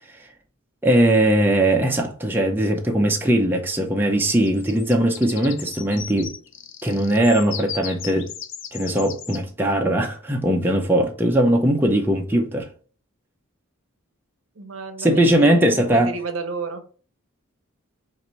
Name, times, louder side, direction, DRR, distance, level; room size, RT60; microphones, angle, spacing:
voice 1, 0.8-6.3 6.8-8.3 8.7-12.7 15.0-16.1, right 1 dB, 10° right, 0.5 m, -20 dB
sound 1, 4.4-9.4, left 8 dB, 55° left, 0.5 m, -36 dB
voice 2, 14.6-16.8, right 4 dB, 65° right, 0.8 m, -31 dB
4.1 x 2.5 x 4.2 m
head